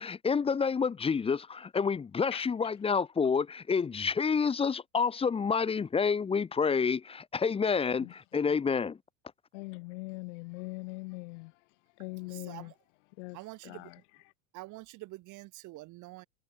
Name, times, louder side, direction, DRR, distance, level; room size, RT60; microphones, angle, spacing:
voice 1, 0.0-9.0, left 5 dB, 15° left, 0.7 m, -29 dB
voice 2, 9.5-11.6 12.0-12.7 13.2-13.4 13.6-14.0, left 27 dB, 60° left, 3.6 m, -41 dB
voice 3, 12.3-12.7 13.3-13.9 14.5-16.3, right 20 dB, 45° right, 2.4 m, -46 dB
hypercardioid pair, 85°, 41 cm